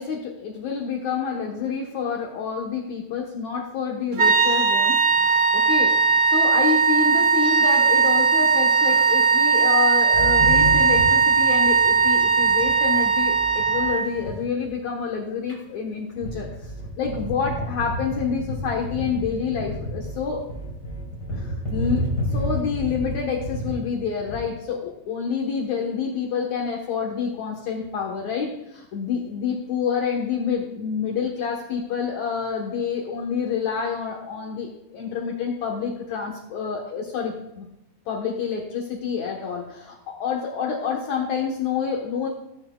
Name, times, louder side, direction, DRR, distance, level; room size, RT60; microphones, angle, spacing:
voice 1, 0.0-5.9 6.3-16.7 17.0-20.4 21.3-22.1 22.3-37.7 38.1-42.3, left 6 dB, 65° left, -1 dB, 2.3 m, -28 dB
sound 1, 4.2-14.2, right 5 dB, 55° right, 2.8 m, -19 dB
sound 2, 10.1-13.9 14.1-14.4 14.6-14.8 15.2-15.3 15.5-15.6 16.1-24.4, equal, 30° left, 3.1 m, -31 dB
16.5 x 10.5 x 2.3 m, 0.91 s
omnidirectional pair, 3.8 m